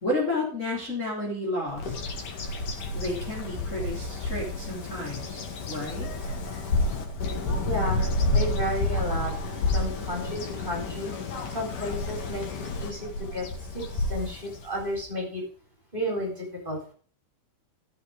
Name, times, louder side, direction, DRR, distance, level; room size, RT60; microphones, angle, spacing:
voice 1, 0.0-2.1 2.9-6.3, left 1 dB, 25° left, -4 dB, 3.6 m, -32 dB
Bird vocalization bird call bird song, 1.8-15.0, left 2 dB, 80° left, 3.5 m, -30 dB
voice 2, 7.6-9.3 9.7-11.1 11.5-13.5 13.7-15.4 15.9-16.8, equal, 15° right, -1 dB, 4.3 m, -32 dB
14.0 x 7.6 x 5.1 m, 0.43 s
omnidirectional pair, 3.6 m